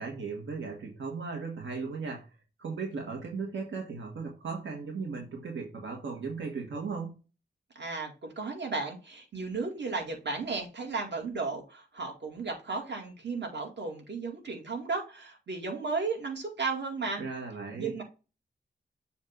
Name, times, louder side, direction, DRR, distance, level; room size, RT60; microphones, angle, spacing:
voice 1, 0.0-2.3 2.6-7.1 17.2-18.0, right 4 dB, 90° right, 0 dB, 1.6 m, -37 dB
voice 2, 7.8-17.2 17.7-18.0, right 4 dB, 70° right, 1 dB, 2.1 m, -34 dB
7.2 x 2.7 x 5.2 m, 0.31 s
wide cardioid pair, 120°, 19 cm